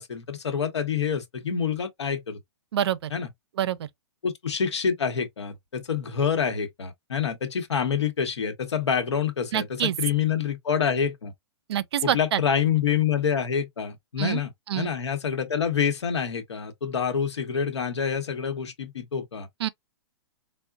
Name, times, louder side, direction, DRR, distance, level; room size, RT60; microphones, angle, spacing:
voice 1, 0.0-2.4 3.1-3.3 4.2-11.3 12.0-19.5, left 7 dB, 90° left, 0.9 m, -27 dB
voice 2, 2.7-3.1 3.6-3.8 9.5-10.0 11.7-12.4 14.2-14.4 14.7-14.9 19.6-19.7, right 11 dB, 70° right, 0.4 m, -26 dB
3.6 x 2.1 x 2.2 m
hypercardioid pair, 135°, 14 cm